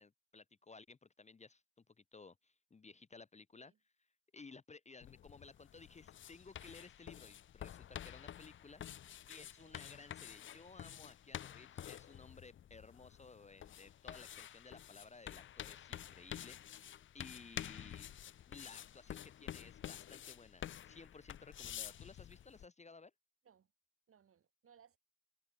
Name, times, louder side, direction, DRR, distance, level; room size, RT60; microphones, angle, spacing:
voice 1, 0.0-3.7 4.3-8.8 9.3-18.0 18.5-23.1, left 4 dB, 25° left, 0.9 m, -57 dB
sound 1, 5.0-22.7, left 10 dB, 40° left, 0.5 m, -50 dB
voice 2, 9.4-9.8 23.4-23.7 24.1-25.0, right 8 dB, 45° right, 2.1 m, -67 dB
cardioid pair, 90°, 30 cm